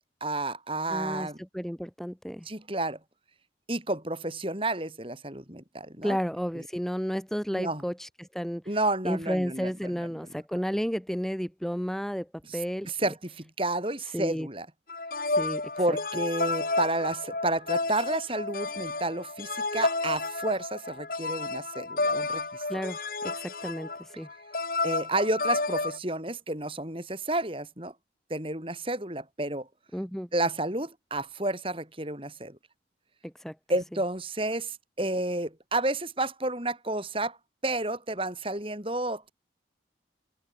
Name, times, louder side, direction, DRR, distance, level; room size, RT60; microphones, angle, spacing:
voice 1, 0.2-1.4 2.5-3.0 3.7-6.2 7.5-7.8 8.7-9.7 12.5-12.6 12.9-14.7 15.8-22.6 24.8-27.9 28.3-29.7 30.3-32.6 33.7-37.4 37.6-39.3, right 2 dB, 30° right, 5.7 m, -31 dB
voice 2, 0.9-2.5 6.0-8.6 9.0-12.9 14.1-14.5 15.3-15.6 22.7-23.0 23.2-24.3 29.9-30.3 33.2-33.6, equal, ahead, 3.8 m, -32 dB
sound 1, 14.9-26.0, left 3 dB, 50° left, 2.4 m, -31 dB
open air
head